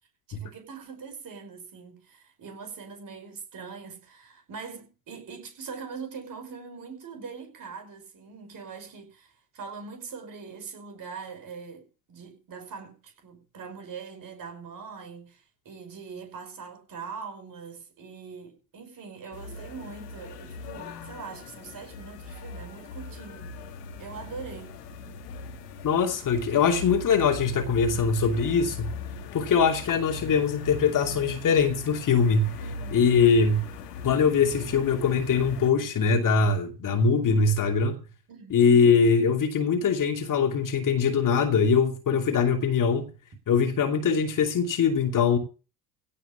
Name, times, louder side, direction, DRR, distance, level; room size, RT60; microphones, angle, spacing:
voice 1, 0.3-23.6 24.0-24.8 32.6-33.1 38.3-38.6, right 5 dB, 45° right, 5.4 m, -42 dB
sound 1, 19.3-35.7, left 3 dB, 75° left, 2.1 m, -39 dB
voice 2, 25.8-28.9 29.3-32.6 32.9-33.6 34.0-38.0 38.5-43.1 43.5-45.4, left 5 dB, 40° left, 2.7 m, -22 dB
16.5 x 5.6 x 7.0 m
hypercardioid pair, 65°, 48 cm